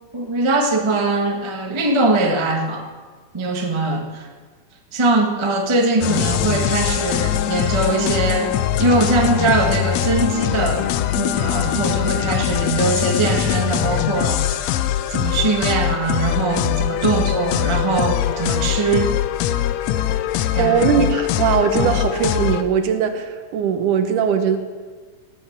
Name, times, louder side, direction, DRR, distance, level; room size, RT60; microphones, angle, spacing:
voice 1, 0.1-2.9 3.3-4.3 4.9-8.5 8.8-10.9 11.2-14.8 15.1-19.2 20.5-21.0 21.7-21.9, right 3 dB, 45° right, 2 dB, 0.3 m, -21 dB
sound 1, 6.0-22.6, left 11 dB, 75° left, 1.6 m, -22 dB
voice 2, 20.6-24.6, right 7 dB, 90° right, 7 dB, 2.6 m, -20 dB
17.0 x 8.3 x 7.2 m, 1.5 s
omnidirectional pair, 3.5 m